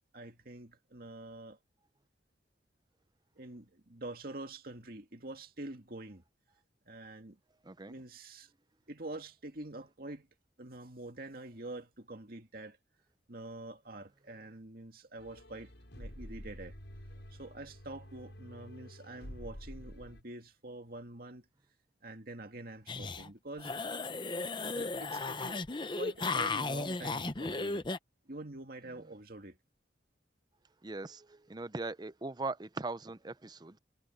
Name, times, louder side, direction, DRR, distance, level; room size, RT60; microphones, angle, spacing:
voice 1, 0.1-1.6 3.4-6.2 6.9-7.4 7.9-8.5 8.9-10.3 10.6-12.8 13.3-16.8 17.3-21.5 22.0-23.8 24.6-25.6 26.0-27.9 28.3-29.6, right 2 dB, 55° right, 2.2 m, -46 dB
sound 1, 15.2-20.2, equal, 80° left, 6.8 m, -49 dB
sound 2, 22.9-23.3 23.6-28.0, left 3 dB, 25° left, 0.8 m, -35 dB
voice 2, 30.8-33.8, right 3 dB, 25° right, 0.6 m, -40 dB
head